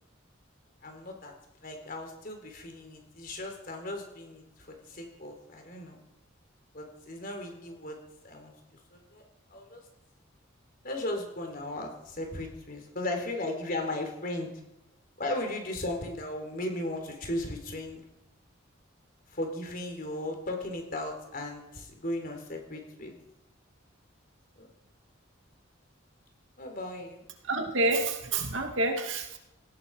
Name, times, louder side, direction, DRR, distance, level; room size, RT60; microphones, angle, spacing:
voice 1, 0.8-1.3 1.6-6.0 6.7-8.0 8.2-8.5 8.9-9.2 9.5-9.8 10.8-14.5 15.2-18.0 19.3-23.2 24.6-24.7 26.6-27.2, left 1 dB, 45° left, 3 dB, 4.0 m, -36 dB
voice 2, 27.5-29.4, right 2 dB, 70° right, 4 dB, 2.4 m, -28 dB
18.0 x 16.5 x 4.9 m, 0.90 s
head